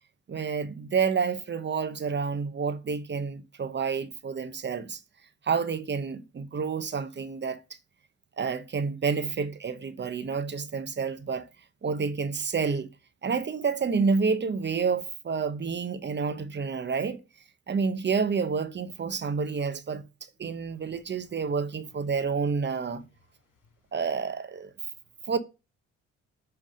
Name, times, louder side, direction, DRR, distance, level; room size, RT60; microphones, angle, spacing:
voice 1, 0.3-5.0 5.4-7.6 8.4-11.5 11.8-12.9 13.2-17.2 17.7-20.0 20.4-23.0 23.9-24.7 25.3-25.4, right 5 dB, 35° right, 0.9 m, -29 dB
voice 2, 20.4-21.5 21.8-22.0 23.0-23.9 24.9-25.3, left 3 dB, 75° left, 2.8 m, -66 dB
7.8 x 3.5 x 6.4 m
cardioid pair, 90°, 30 cm